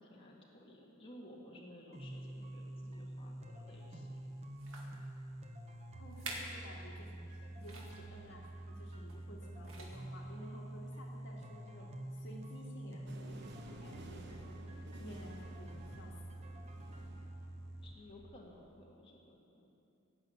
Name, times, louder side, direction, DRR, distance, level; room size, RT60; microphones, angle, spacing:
voice 1, 0.0-4.2 17.8-19.7, left 1 dB, 25° left, -3 dB, 1.8 m, -56 dB
sound 1, 1.9-17.9, right 1 dB, 35° right, 1.1 m, -47 dB
sound 2, 3.9-4.0 4.6-5.0 5.7-5.8 6.1-6.6 6.9-7.1 7.6-8.0 9.1-9.3 9.6-10.2 10.9-11.0, right 2 dB, 75° right, 2.1 m, -47 dB
voice 2, 5.9-16.1, equal, 60° left, -1 dB, 1.9 m, -54 dB
sound 3, 13.1-18.7, right 1 dB, 55° right, 1.1 m, -54 dB
17.5 x 6.2 x 9.5 m, 2.6 s
head